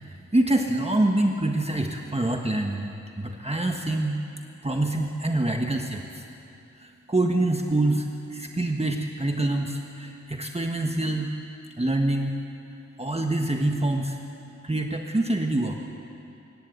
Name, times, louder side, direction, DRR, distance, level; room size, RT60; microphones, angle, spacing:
voice 1, 0.0-2.9 3.2-4.2 4.6-6.2 6.8-11.3 11.8-12.3 13.0-14.2 14.6-15.8, right 2 dB, 20° right, 2 dB, 1.4 m, -25 dB
25.5 x 15.0 x 9.5 m, 2.7 s
wide cardioid pair, 85°, 29 cm